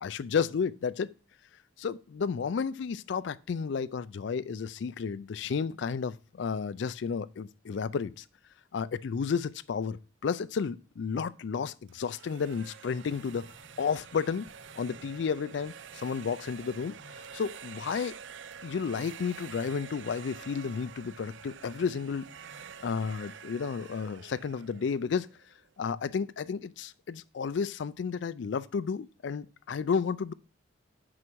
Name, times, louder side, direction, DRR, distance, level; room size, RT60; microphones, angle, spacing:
voice 1, 0.0-1.1 1.8-8.2 8.7-14.5 14.8-18.2 18.6-22.2 22.8-25.3 25.8-30.3, left 6 dB, 60° left, 0.3 m, -32 dB
sound 1, 11.9-25.7, right 7 dB, 60° right, 0.4 m, -48 dB
sound 2, 13.1-23.2, left 2 dB, 40° left, 0.9 m, -59 dB
7.3 x 6.2 x 4.6 m
head